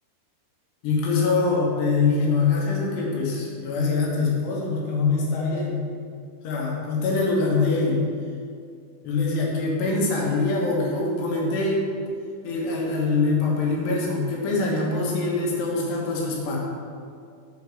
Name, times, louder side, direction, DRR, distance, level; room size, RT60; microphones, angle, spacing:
voice 1, 0.8-5.8 6.4-8.0 9.0-11.8 12.4-16.6, left 3 dB, 90° left, -3 dB, 3.5 m, -24 dB
7.6 x 5.0 x 6.9 m, 2.3 s
omnidirectional pair, 4.6 m